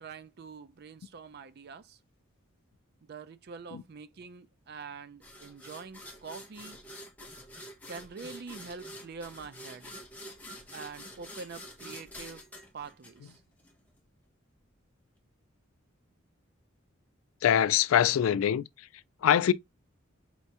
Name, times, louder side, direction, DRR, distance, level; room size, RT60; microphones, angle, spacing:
voice 1, 0.0-2.0 3.0-6.8 7.9-9.9 10.7-12.5 12.7-13.4, right 5 dB, 50° right, 0.4 m, -45 dB
sound 1, 5.2-13.7, equal, 10° left, 0.8 m, -47 dB
voice 2, 17.4-18.6 19.2-19.5, left 9 dB, 80° left, 0.3 m, -23 dB
4.3 x 3.4 x 2.8 m
head